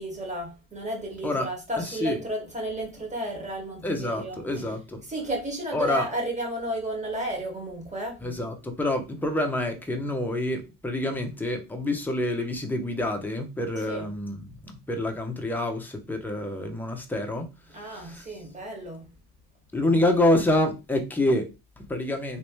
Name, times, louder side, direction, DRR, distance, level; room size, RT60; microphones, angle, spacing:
voice 1, 0.0-4.4 5.1-8.2 13.9-14.0 17.7-19.1, right 1 dB, 15° right, 1.7 m, -33 dB
voice 2, 1.8-2.2 3.8-5.0 5.7-6.1 8.2-18.4 19.7-22.4, left 1 dB, 5° left, 0.7 m, -27 dB
3.1 x 3.1 x 3.0 m
supercardioid pair, 110°, 44 cm